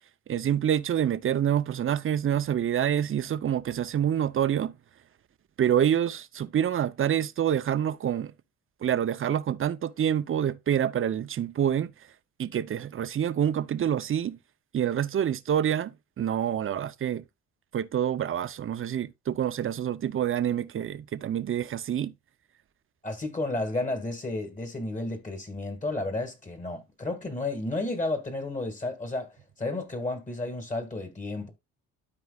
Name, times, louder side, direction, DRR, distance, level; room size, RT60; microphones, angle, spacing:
voice 1, 0.3-4.7 5.6-8.3 8.8-11.9 12.4-14.4 14.7-17.2 17.7-22.1, right 9 dB, 45° right, 0.7 m, -27 dB
voice 2, 23.0-31.5, left 2 dB, 25° left, 2.1 m, -32 dB
13.0 x 4.7 x 2.4 m
cardioid pair, 90°, 30 cm